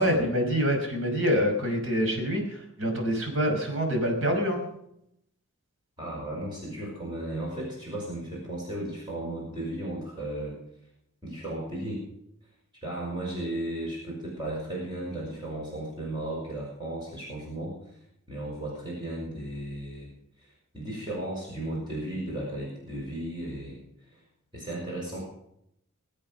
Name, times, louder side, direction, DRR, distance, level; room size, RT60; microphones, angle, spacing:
voice 1, 0.0-4.7, equal, 70° right, 3 dB, 5.3 m, -26 dB
voice 2, 6.0-10.6 11.2-12.0 12.8-18.0 18.3-20.1 20.4-23.8 24.0-24.2 24.5-25.2, right 1 dB, 20° right, -4 dB, 5.9 m, -35 dB
23.5 x 8.5 x 6.6 m, 0.76 s
head